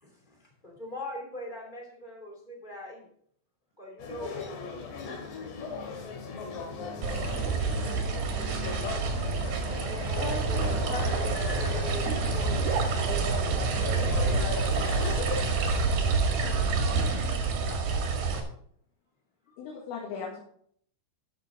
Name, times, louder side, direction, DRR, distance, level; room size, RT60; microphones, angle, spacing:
voice 1, 0.0-3.1 3.8-4.5 9.2-12.7 13.1-13.6 14.2-15.2 19.5-19.6, left 1 dB, 30° left, -1 dB, 0.9 m, -41 dB
sound 1, 4.0-15.9, left 4 dB, 60° left, 4.1 m, -39 dB
voice 2, 4.2-5.2 10.2-11.3 15.2-15.5 19.6-20.4, left 5 dB, 75° left, -3 dB, 4.4 m, -38 dB
sound 2, 7.0-18.4, right 4 dB, 55° right, 3.3 m, -28 dB
voice 3, 7.4-10.1 10.6-10.9 11.6-14.2, right 7 dB, 80° right, 5 dB, 2.9 m, -41 dB
14.0 x 8.1 x 3.8 m, 0.64 s
omnidirectional pair, 5.9 m